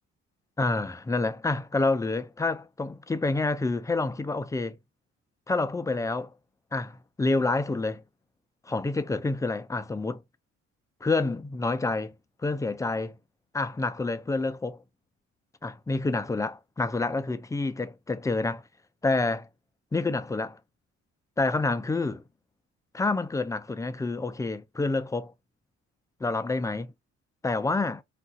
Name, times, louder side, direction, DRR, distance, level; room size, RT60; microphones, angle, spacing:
voice 1, 0.6-4.8 5.5-6.3 6.7-8.0 8.7-10.2 11.0-12.1 12.4-13.2 13.5-14.8 15.6-18.6 19.0-19.5 19.9-20.6 21.4-22.2 22.9-25.3 26.2-26.9 27.4-28.0, left 3 dB, 10° left, 0.3 m, -28 dB
2.4 x 2.3 x 3.9 m
cardioid pair, 90°, 30 cm